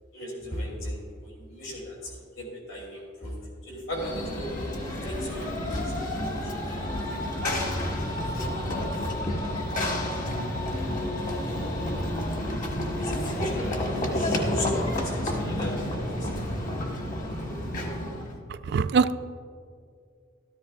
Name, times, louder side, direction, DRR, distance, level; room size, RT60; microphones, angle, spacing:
voice 1, 0.1-3.3 3.6-4.5 4.8-6.1 6.5-7.1 12.9-16.4, equal, 80° left, -3 dB, 3.2 m, -38 dB
Run / Train, 3.9-18.4, left 1 dB, 40° left, 1.4 m, -30 dB
voice 2, 18.5-19.1, right 5 dB, 55° right, 13 dB, 0.3 m, -23 dB
13.5 x 13.5 x 2.5 m, 2.2 s
head